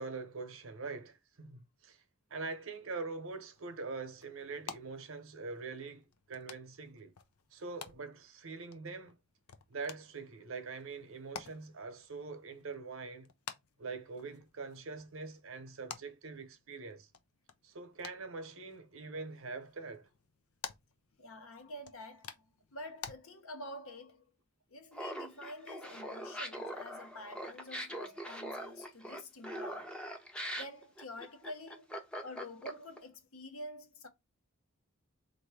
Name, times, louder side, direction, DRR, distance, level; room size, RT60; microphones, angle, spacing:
voice 1, 0.0-2.0 2.3-7.1 7.5-9.2 9.7-13.3 13.8-17.1 17.6-20.1, right 4 dB, 70° right, 0.9 m, -43 dB
sound 1, 3.3-23.1, left 7 dB, 90° left, 0.6 m, -52 dB
voice 2, 21.2-22.4 22.7-24.3 24.7-30.0 30.6-34.1, left 1 dB, 75° left, 1.0 m, -48 dB
Laughter, 24.9-33.0, equal, 5° left, 0.6 m, -42 dB
4.0 x 2.6 x 4.7 m
head